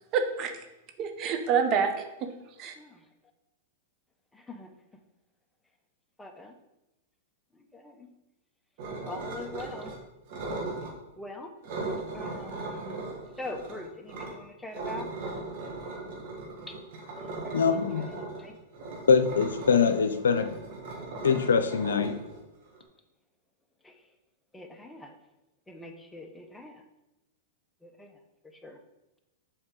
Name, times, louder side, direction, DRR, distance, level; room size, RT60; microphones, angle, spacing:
voice 1, 0.1-0.6 1.0-2.3 2.6-2.7, right 6 dB, 35° right, 7 dB, 0.8 m, -27 dB
voice 2, 2.7-3.1 4.3-4.7 6.2-6.6 7.5-8.1 9.0-9.9 11.2-11.5 12.1-13.1 13.4-15.1 16.7-16.8 17.2-18.5 23.8-24.1 24.5-25.2 25.7-26.8 27.8-28.2 28.6-28.8, left 2 dB, 5° left, 4 dB, 0.8 m, -43 dB
sound 1, 8.8-10.0 10.3-10.9 11.6-14.3 14.7-22.8, right 2 dB, 55° right, 1.7 m, -38 dB
voice 3, 17.5-18.0 19.1-20.5 21.2-22.2, left 6 dB, 90° left, 9 dB, 0.6 m, -23 dB
7.0 x 4.5 x 3.8 m, 0.94 s
hypercardioid pair, 125°, 0 cm